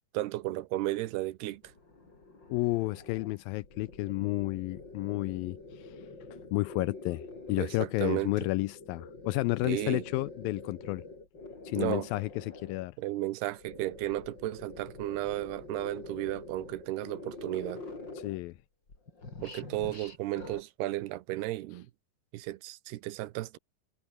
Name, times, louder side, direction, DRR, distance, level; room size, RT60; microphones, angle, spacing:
voice 1, 0.1-1.6 7.6-8.3 9.6-10.0 11.8-12.1 13.0-17.8 19.4-21.9 22.3-23.6, right 16 dB, 85° right, 2.9 m, -34 dB
sound 1, 1.5-8.1 8.5-12.9 13.5-18.6 18.9-20.6, left 3 dB, 25° left, 5.7 m, -46 dB
voice 2, 2.5-6.0 6.5-11.0 11.7-12.9 18.2-18.6, left 19 dB, 85° left, 2.1 m, -31 dB
omnidirectional pair, 4.7 m